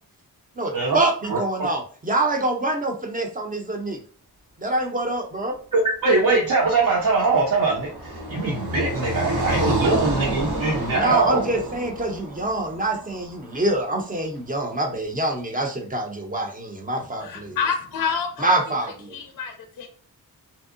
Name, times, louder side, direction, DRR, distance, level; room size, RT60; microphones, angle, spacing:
voice 1, 0.6-4.0 4.6-5.5 10.9-17.6 18.4-19.1, right 2 dB, 20° right, 2 dB, 0.6 m, -25 dB
voice 2, 5.7-7.9 8.3-11.4, right 3 dB, 55° right, -3 dB, 0.7 m, -21 dB
Car passing by, 6.5-13.7, right 1 dB, 90° right, 0.9 m, -29 dB
voice 3, 17.0-18.6 19.1-19.9, left 6 dB, 55° left, 5 dB, 0.5 m, -28 dB
2.7 x 2.0 x 2.4 m, 0.43 s
cardioid pair, 65°, 38 cm